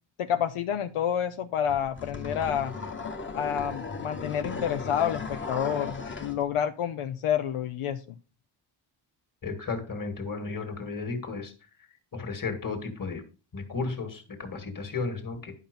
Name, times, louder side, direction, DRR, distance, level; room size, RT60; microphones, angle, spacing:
voice 1, 0.2-2.7 3.3-8.0, left 9 dB, 80° left, 8 dB, 0.8 m, -29 dB
sound 1, 1.7-6.4, left 4 dB, 25° left, 1.2 m, -36 dB
voice 2, 9.4-11.5 12.1-13.2 13.5-15.5, left 4 dB, 40° left, 6 dB, 2.3 m, -34 dB
11.0 x 5.8 x 5.4 m, 0.33 s
wide cardioid pair, 165°, 50 cm